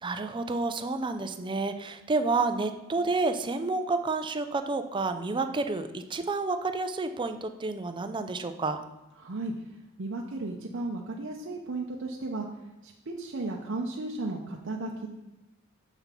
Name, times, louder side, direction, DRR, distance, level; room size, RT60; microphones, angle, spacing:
voice 1, 0.0-8.8, right 3 dB, 25° right, 8 dB, 0.5 m, -30 dB
voice 2, 9.2-9.5 10.0-12.5 13.1-15.1, right 2 dB, 60° right, -1 dB, 0.7 m, -34 dB
6.9 x 5.7 x 4.4 m, 1.0 s
head